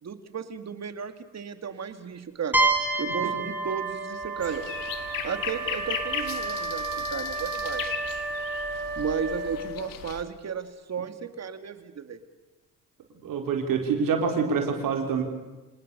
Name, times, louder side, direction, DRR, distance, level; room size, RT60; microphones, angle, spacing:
voice 1, 0.0-2.6 3.0-4.6 5.2-7.9 9.0-12.2, right 7 dB, 55° right, 9 dB, 2.5 m, -34 dB
sound 1, 2.5-6.2, right 3 dB, 5° right, 5.1 m, -29 dB
Wind instrument woodwind instrument, 2.5-10.1, right 3 dB, 35° right, 5.5 m, -34 dB
sound 2, 4.4-10.2, left 10 dB, 90° left, 1.9 m, -37 dB
voice 2, 13.2-15.2, right 5 dB, 80° right, 4 dB, 4.3 m, -26 dB
28.5 x 19.0 x 7.0 m, 1.2 s
cardioid pair, 75°, 33 cm